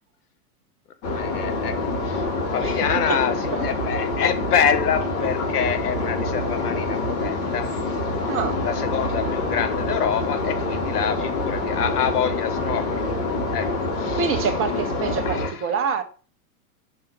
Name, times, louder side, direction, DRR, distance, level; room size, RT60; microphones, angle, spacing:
voice 1, 1.0-1.8 2.0-7.7 8.6-13.1 13.5-13.7 13.9-14.5 15.2-15.6, left 8 dB, 75° left, 1.4 m, -26 dB
sound 1, 1.0-15.5, left 2 dB, 40° left, 4.3 m, -26 dB
voice 2, 8.3-8.6 14.1-16.0, right 6 dB, 25° right, 1.2 m, -26 dB
5.7 x 5.6 x 5.3 m
hypercardioid pair, 110°, 46 cm